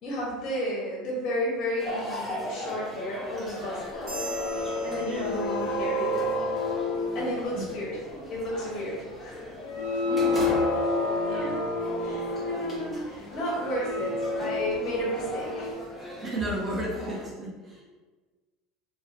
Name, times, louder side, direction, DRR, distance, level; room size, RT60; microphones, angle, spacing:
voice 1, 0.0-4.1 4.8-6.0 7.1-8.0 8.3-9.5 11.2-11.6 12.0-15.7, equal, 45° left, -4 dB, 0.7 m, -33 dB
sound 1, 1.8-17.3, equal, 10° left, 1.0 m, -39 dB
sound 2, 3.9-7.8 9.2-9.3 9.6-13.0 13.5-15.7, left 2 dB, 85° left, 0.3 m, -29 dB
sound 3, 4.1-5.9, right 4 dB, 60° right, 1.0 m, -42 dB
voice 2, 16.2-17.8, right 1 dB, 25° right, -4 dB, 0.8 m, -33 dB
2.5 x 2.2 x 2.4 m, 1.3 s
supercardioid pair, 105°, 0 cm